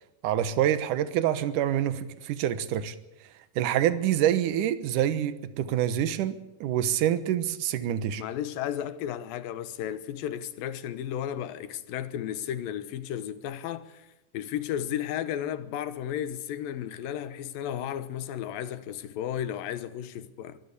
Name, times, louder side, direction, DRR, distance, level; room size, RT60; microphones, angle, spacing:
voice 1, 0.2-2.9 3.6-8.2, right 11 dB, 70° right, 2.5 m, -26 dB
voice 2, 8.2-14.1 14.3-20.6, left 10 dB, 90° left, 2.8 m, -34 dB
23.5 x 14.0 x 8.4 m
omnidirectional pair, 3.9 m